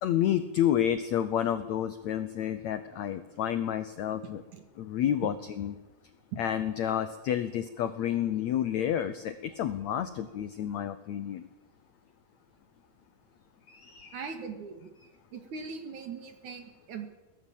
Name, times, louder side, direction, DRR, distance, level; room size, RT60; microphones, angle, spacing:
voice 1, 0.0-4.4 4.8-5.8 6.4-11.5 13.7-14.2, left 10 dB, 80° left, 10 dB, 1.6 m, -30 dB
voice 2, 14.1-14.9 15.3-17.1, right 5 dB, 55° right, 6 dB, 3.2 m, -40 dB
23.0 x 17.5 x 7.3 m, 1.1 s
omnidirectional pair, 4.4 m